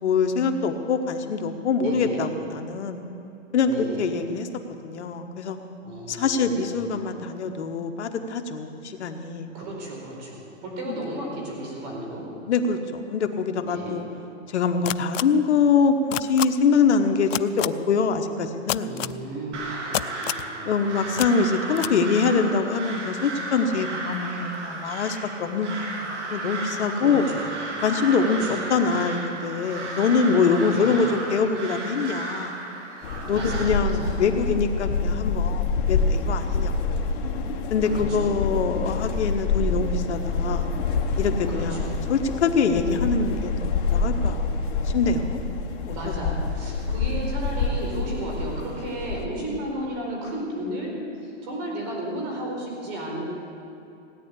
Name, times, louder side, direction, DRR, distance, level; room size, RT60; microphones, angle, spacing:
voice 1, 0.0-3.0 3.5-4.5 4.8-5.6 6.1-9.5 10.9-11.0 12.5-14.0 14.5-18.9 20.6-27.2 27.8-32.5 33.2-37.1 37.7-40.7 41.2-41.8 42.1-44.5 44.8-45.4 45.8-46.0, left 5 dB, 65° left, 6 dB, 1.3 m, -24 dB
voice 2, 1.8-2.2 3.6-4.0 5.8-6.7 9.5-12.2 13.6-14.0 18.8-20.8 27.0-27.5 28.2-28.6 30.6-31.0 33.3-34.2 37.8-38.3 41.5-41.9 45.9-50.9 51.2-53.2, right 1 dB, 35° right, -1 dB, 4.6 m, -34 dB
sound 1, 14.9-15.2 16.1-16.5 17.3-17.7 18.7-19.1 19.9-20.5 21.2-21.3 21.8-21.9, left 13 dB, 80° left, 0.6 m, -27 dB
Crow, 19.5-33.7, right 2 dB, 65° right, 3.7 m, -34 dB
sound 2, 33.0-49.2, left 4 dB, 45° left, 1.5 m, -27 dB
17.5 x 9.8 x 8.4 m, 2.9 s
hypercardioid pair, 160°, 37 cm